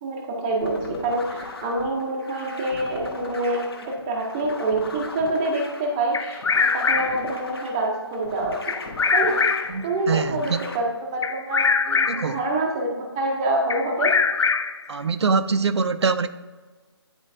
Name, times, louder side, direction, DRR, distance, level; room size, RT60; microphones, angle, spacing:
voice 1, 0.0-8.6 9.1-9.5 9.8-10.8 11.1-14.2, right 2 dB, 10° right, 0.5 m, -26 dB
sound 1, 0.6-10.8, left 3 dB, 60° left, 1.2 m, -39 dB
Bird vocalization bird call bird song, 6.1-7.3 8.7-9.9 11.2-12.4 13.7-14.9, left 5 dB, 80° left, 0.5 m, -23 dB
voice 2, 9.7-10.6 12.1-12.4 14.9-16.3, right 5 dB, 75° right, 0.5 m, -24 dB
9.7 x 4.5 x 2.6 m
hypercardioid pair, 165°, 14 cm